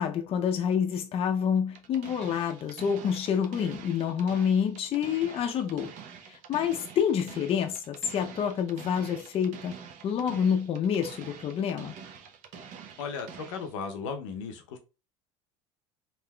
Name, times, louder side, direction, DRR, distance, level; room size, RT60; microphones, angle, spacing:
voice 1, 0.0-5.9 6.3-9.7 10.0-11.9, left 8 dB, 40° left, 0.5 m, -28 dB
sound 1, 1.7-13.7, right 7 dB, 55° right, 0.6 m, -46 dB
voice 2, 13.0-14.8, left 5 dB, 90° left, 0.6 m, -36 dB
3.5 x 2.5 x 2.2 m
supercardioid pair, 100°, 16 cm